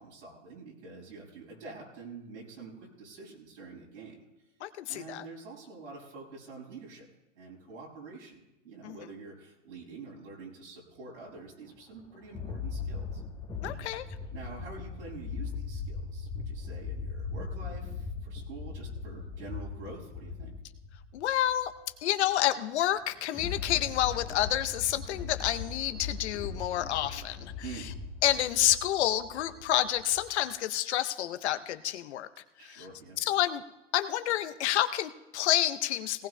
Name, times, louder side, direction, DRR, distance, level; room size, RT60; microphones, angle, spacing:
voice 1, 0.0-4.2 4.9-7.1 7.3-13.2 14.3-20.5 27.6-27.9 32.6-33.2, right 4 dB, 85° right, -5 dB, 6.2 m, -46 dB
voice 2, 4.6-5.3 8.8-9.0 13.6-14.0 21.1-21.7 22.0-27.9 28.2-32.3 32.6-32.9 33.2-33.6 33.9-36.3, left 13 dB, 65° left, 11 dB, 0.8 m, -29 dB
sound 1, 11.4-11.5 12.0-21.7 23.0-30.3, left 4 dB, 15° left, 1.1 m, -39 dB
18.5 x 18.5 x 2.2 m, 0.97 s
hypercardioid pair, 120°, 36 cm